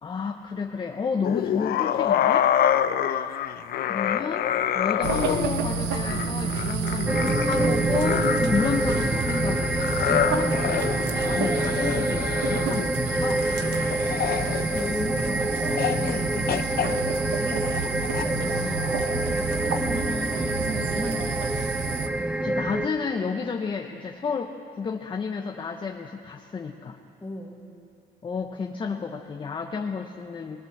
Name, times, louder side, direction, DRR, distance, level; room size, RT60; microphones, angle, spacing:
voice 1, 0.0-2.5 3.9-4.5 4.7-13.5 18.3-19.0 22.4-27.0 28.2-30.6, left 5 dB, 30° left, 3 dB, 1.1 m, -31 dB
sound 1, 1.2-15.3 15.8-16.2 16.5-18.2, left 10 dB, 65° left, 0.8 m, -28 dB
sound 2, 5.0-22.1, right 5 dB, 85° right, 1.3 m, -30 dB
sound 3, 7.1-22.9, right 1 dB, 5° right, 0.7 m, -27 dB
voice 2, 8.4-8.7 14.4-18.4 19.0-21.7 27.2-27.6, left 1 dB, 10° left, 0 dB, 2.6 m, -36 dB
22.5 x 19.5 x 6.7 m, 2.5 s
cardioid pair, 110°, 17 cm